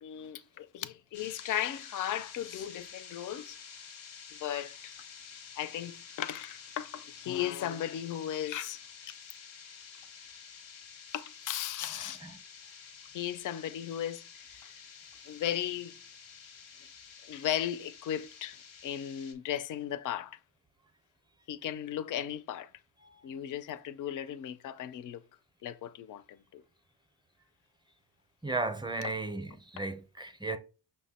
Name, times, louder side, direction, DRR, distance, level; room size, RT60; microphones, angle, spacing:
voice 1, 0.0-3.6 4.3-4.9 5.6-8.8 9.1-9.2 11.1-12.2 13.1-14.7 15.3-16.0 17.3-20.4 21.5-22.7 23.2-25.2 25.6-26.6 29.0-29.1, left 11 dB, 45° left, 0.4 m, -36 dB
sound 1, 1.1-19.3, left 6 dB, 90° left, 0.9 m, -50 dB
voice 2, 28.4-30.6, right 3 dB, 10° right, 0.5 m, -35 dB
5.5 x 2.2 x 4.1 m
cardioid pair, 85°, 43 cm